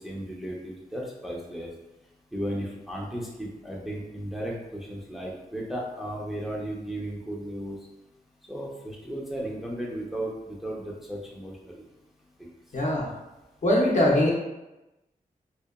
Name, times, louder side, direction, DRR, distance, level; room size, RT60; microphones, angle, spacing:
voice 1, 0.0-1.7 2.3-7.8 8.5-11.9 12.4-12.5, right 1 dB, ahead, -3 dB, 0.4 m, -35 dB
voice 2, 12.7-13.1 13.6-14.3, left 1 dB, 55° left, -2 dB, 0.6 m, -22 dB
2.7 x 2.1 x 2.3 m, 0.98 s
wide cardioid pair, 90°, 15 cm